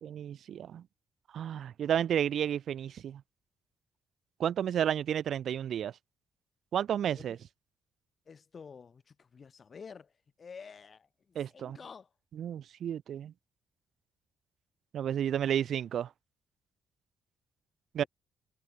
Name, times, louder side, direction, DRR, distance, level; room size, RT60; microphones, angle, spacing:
voice 1, 0.0-0.8 1.3-3.2 4.4-5.9 6.7-7.4 11.3-11.8 12.3-13.3 14.9-16.1 17.9-18.0, right 9 dB, 65° right, 1.1 m, -31 dB
voice 2, 8.3-10.1 10.4-12.1 18.0-18.1, left 6 dB, 40° left, 7.8 m, -50 dB
cardioid pair, 90°, 0 cm